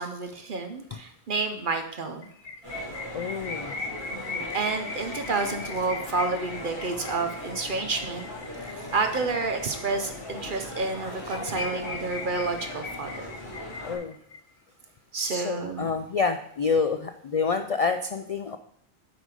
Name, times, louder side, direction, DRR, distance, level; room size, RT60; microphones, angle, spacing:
voice 1, 0.0-2.3 4.1-13.3 15.1-15.9, right 3 dB, 55° right, 6 dB, 0.9 m, -30 dB
sound 1, 2.2-10.2 10.5-10.6 10.9-11.0 11.3-14.4, left 4 dB, 85° left, 1.5 m, -38 dB
sound 2, 2.6-14.0, left 1 dB, 30° right, 2.9 m, -39 dB
voice 2, 3.1-3.7 13.8-14.2 15.2-18.6, left 5 dB, 60° left, 8 dB, 0.4 m, -28 dB
8.0 x 5.2 x 4.8 m, 0.68 s
omnidirectional pair, 1.1 m